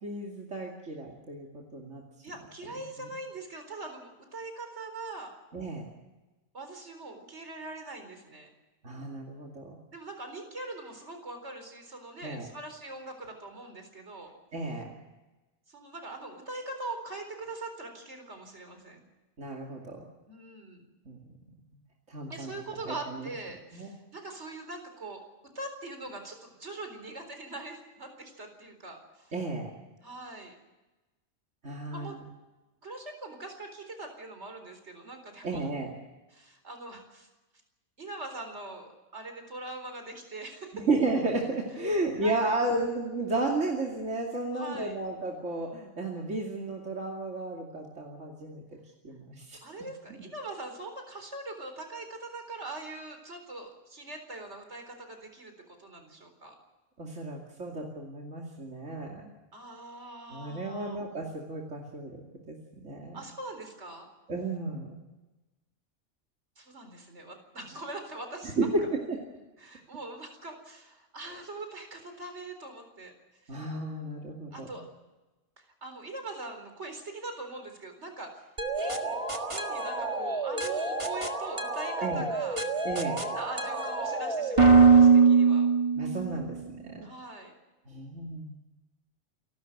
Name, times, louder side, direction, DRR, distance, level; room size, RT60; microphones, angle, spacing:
voice 1, 0.0-2.0 3.0-3.1 5.5-5.9 8.8-9.8 12.2-12.5 14.5-15.0 19.4-20.1 21.1-21.2 22.1-22.5 22.8-23.3 23.7-23.9 29.3-29.7 31.6-32.2 35.4-35.9 40.7-48.6 49.0-49.6 57.0-59.3 60.3-63.2 64.3-65.0 68.6-68.8 69.1-69.2 73.5-74.7 82.0-82.2 82.8-83.2 86.0-86.6 86.8-87.1 87.9-88.6, right 2 dB, 80° right, -1 dB, 2.9 m, -33 dB
voice 2, 2.2-5.3 6.5-8.5 9.9-14.3 15.7-19.1 20.3-20.9 22.3-25.2 25.5-29.3 30.0-30.5 31.9-32.2 32.8-35.7 36.3-37.3 38.0-40.9 41.9-42.6 44.5-45.0 49.6-55.5 55.8-56.5 59.5-61.0 63.1-64.1 66.6-68.9 69.6-73.1 73.4-73.6 74.5-74.9 75.6-78.5 78.7-82.9 83.2-85.7 87.0-87.5, right 2 dB, 65° right, 5 dB, 4.5 m, -42 dB
sound 1, 78.6-86.4, right 5 dB, 25° right, 1.7 m, -24 dB
29.0 x 13.0 x 8.0 m, 1.1 s
omnidirectional pair, 1.2 m